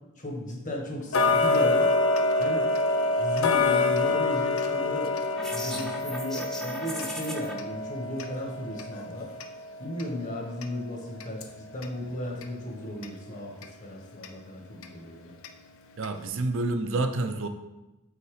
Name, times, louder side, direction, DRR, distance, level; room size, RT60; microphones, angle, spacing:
voice 1, 0.2-1.9 2.4-2.7 3.2-5.1 5.5-9.3 9.8-15.3, left 1 dB, 35° left, 0 dB, 1.2 m, -35 dB
Tick-tock, 1.1-12.0 12.4-12.5 13.0-13.1 13.6-13.7 14.2-14.3 14.8-14.9 15.4-15.5 16.0-16.1, left 2 dB, 75° left, 0.5 m, -27 dB
sound 1, 5.4-7.5, left 1 dB, ahead, 0.5 m, -37 dB
voice 2, 16.0-17.5, right 2 dB, 60° right, 7 dB, 0.5 m, -28 dB
5.6 x 4.0 x 4.8 m, 1.0 s
head